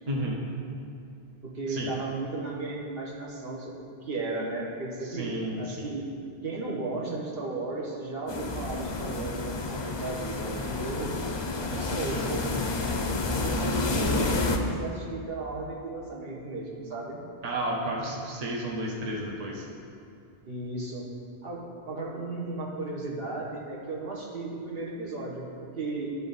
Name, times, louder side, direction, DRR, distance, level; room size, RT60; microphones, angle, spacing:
voice 1, 1.4-5.3 5.6-6.1 6.4-11.2 11.9-12.6 13.2-17.3 20.4-21.1 21.4-26.2, right 3 dB, 70° right, -3 dB, 1.3 m, -35 dB
voice 2, 5.1-5.9 11.7-12.3 17.4-19.7, right 1 dB, 40° right, -1 dB, 0.9 m, -32 dB
sound 1, 8.3-14.6, left 2 dB, 40° left, 0.4 m, -29 dB
12.0 x 4.0 x 4.0 m, 2.4 s
omnidirectional pair, 1.0 m